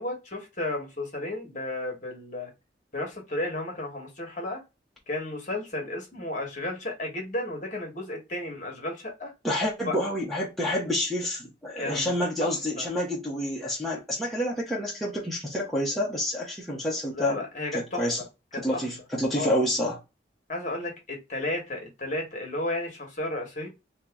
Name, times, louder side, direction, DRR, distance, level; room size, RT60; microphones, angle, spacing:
voice 1, 0.0-2.5 2.9-4.6 5.1-9.3 9.8-10.0 11.8-12.1 12.4-12.5 12.8-12.9 17.1-18.3 18.5-18.8 19.3-19.5 20.5-23.7, left 2 dB, 45° left, 1.3 m, -33 dB
voice 2, 9.4-17.4 17.7-18.2 18.5-20.0, left 1 dB, ahead, 0.9 m, -28 dB
2.9 x 2.8 x 3.4 m
head